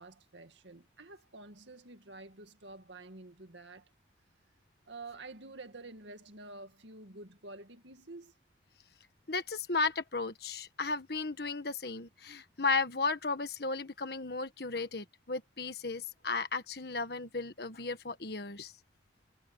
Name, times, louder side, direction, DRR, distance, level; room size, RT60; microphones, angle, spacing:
voice 1, 0.0-3.9 4.9-8.3, right 2 dB, 80° right, 2.2 m, -49 dB
voice 2, 9.3-18.7, left 4 dB, 55° left, 1.6 m, -34 dB
head